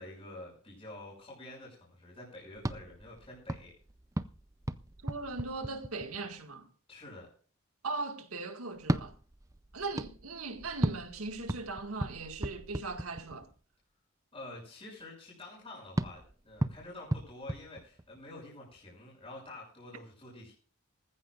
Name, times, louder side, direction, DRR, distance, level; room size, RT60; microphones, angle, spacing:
voice 1, 0.0-3.7 6.9-7.3 14.3-20.5, left 2 dB, 25° left, 6.6 m, -48 dB
sound 1, 2.5-6.4 8.8-13.6 16.0-18.4, right 1 dB, 15° right, 0.5 m, -37 dB
voice 2, 5.0-6.7 7.8-9.2 9.7-13.5, right 3 dB, 90° right, 1.9 m, -39 dB
19.0 x 15.0 x 2.5 m
head